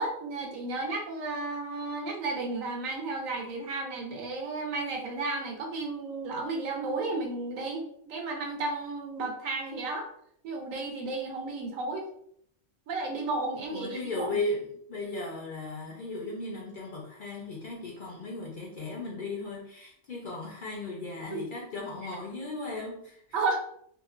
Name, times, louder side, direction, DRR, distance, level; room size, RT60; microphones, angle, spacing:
voice 1, 0.0-10.1 10.4-12.1 12.9-14.3 21.3-21.4 23.3-23.6, right 3 dB, 85° right, 2 dB, 1.0 m, -33 dB
voice 2, 13.7-23.4, left 2 dB, 70° left, -2 dB, 0.5 m, -36 dB
2.8 x 2.1 x 2.4 m, 0.66 s
omnidirectional pair, 1.3 m